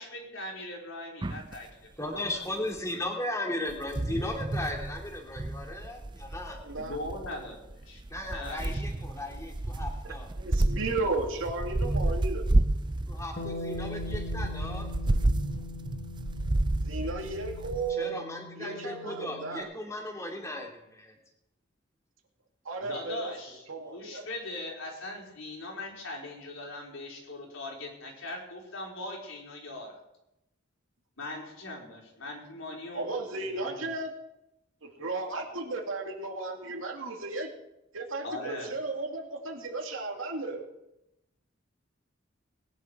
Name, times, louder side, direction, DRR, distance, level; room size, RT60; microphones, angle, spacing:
voice 1, 0.0-1.7 2.5-2.6 6.8-8.0 8.3-8.8 22.8-30.0 31.2-33.1 33.4-33.9 38.2-38.7, left 2 dB, 80° left, -1 dB, 4.5 m, -40 dB
sound 1, 1.2-1.6 2.8-2.9 3.7-17.9, right 2 dB, 25° right, 0.5 m, -31 dB
voice 2, 2.0-6.6 8.1-10.3 13.1-14.9 17.9-21.1, left 1 dB, 15° left, 1 dB, 2.6 m, -36 dB
voice 3, 6.6-7.0 10.0-12.5 16.8-18.2 18.6-19.7 22.6-23.3 23.7-24.3 32.9-34.1 35.0-37.5 37.9-40.7, right 3 dB, 90° right, 2 dB, 2.6 m, -34 dB
Bass guitar, 13.4-19.6, left 3 dB, 50° left, 1.8 m, -42 dB
20.0 x 10.5 x 4.7 m, 0.88 s
head